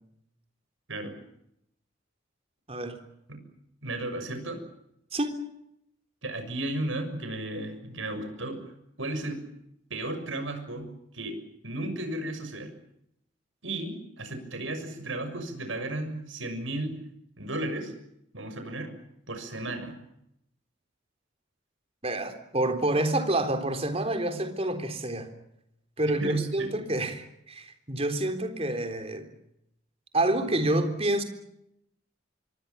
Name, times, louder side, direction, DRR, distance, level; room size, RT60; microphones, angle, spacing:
voice 1, 2.7-3.0 5.1-5.4 22.0-25.3 26.0-29.3 30.1-31.2, right 1 dB, 30° right, 7 dB, 3.7 m, -28 dB
voice 2, 3.8-4.6 6.2-8.7 9.0-9.4 9.9-10.9 11.1-12.7 13.6-16.9 17.4-17.9 18.3-18.9 19.3-20.0 26.2-26.7, right 1 dB, 80° right, 8 dB, 6.5 m, -34 dB
26.0 x 23.5 x 7.1 m, 0.79 s
head